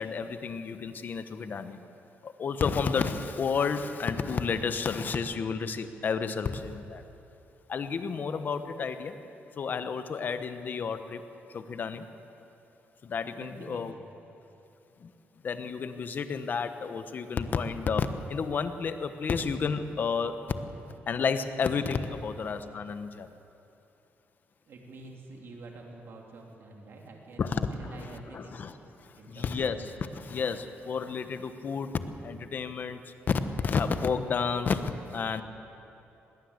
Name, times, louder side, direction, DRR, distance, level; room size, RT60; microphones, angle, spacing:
voice 1, 0.0-1.8 2.2-7.0 7.7-9.2 9.6-11.2 11.5-12.1 13.0-13.9 15.0-15.1 15.4-20.6 21.1-23.3 27.4-27.7 28.0-28.7 29.0-35.4, left 5 dB, 40° left, 10 dB, 1.1 m, -31 dB
voice 2, 13.4-14.1 24.7-29.9, right 2 dB, 55° right, 0 dB, 3.1 m, -48 dB
20.5 x 18.5 x 8.2 m, 2.8 s
wide cardioid pair, 155°, 5 cm